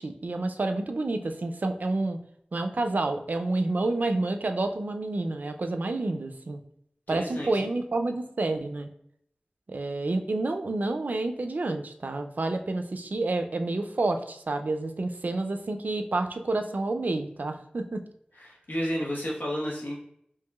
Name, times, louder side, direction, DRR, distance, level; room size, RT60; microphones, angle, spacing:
voice 1, 0.0-2.2 2.5-6.6 7.1-8.9 9.7-18.0, right 2 dB, 70° right, 6 dB, 0.4 m, -29 dB
voice 2, 7.1-7.7 18.4-20.0, equal, 80° left, -3 dB, 1.1 m, -32 dB
4.6 x 3.0 x 2.3 m, 0.71 s
wide cardioid pair, 65°, 3 cm